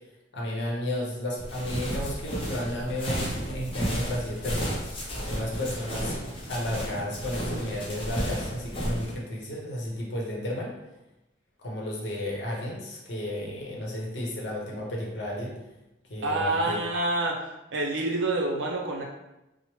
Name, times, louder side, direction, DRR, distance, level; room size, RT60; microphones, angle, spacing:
voice 1, 0.3-4.7 5.3-6.1 6.5-10.7 11.6-15.5 16.1-16.8, left 1 dB, 65° left, -3 dB, 0.7 m, -33 dB
sound 1, 1.4-9.1, equal, 30° left, 0.5 m, -33 dB
voice 2, 16.2-17.4 17.7-19.0, right 2 dB, 75° right, -1 dB, 0.5 m, -27 dB
2.9 x 2.0 x 3.0 m, 0.95 s
head